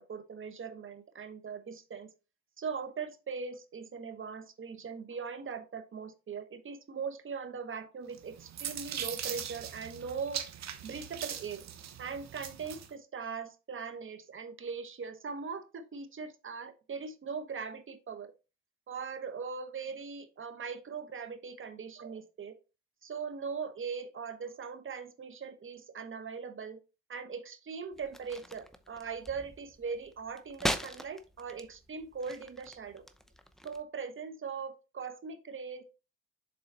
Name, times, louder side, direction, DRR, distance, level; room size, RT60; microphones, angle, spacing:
voice 1, 0.0-2.1 2.6-10.4 10.8-11.6 12.0-18.3 18.9-22.6 23.0-26.8 27.1-33.0 33.6-35.8, right 5 dB, 40° right, 1.1 m, -40 dB
sound 1, 8.1-12.9, right 9 dB, 65° right, 1.1 m, -41 dB
sound 2, 27.9-33.8, equal, ahead, 0.7 m, -41 dB
6.9 x 4.0 x 4.0 m
cardioid pair, 90°, 30 cm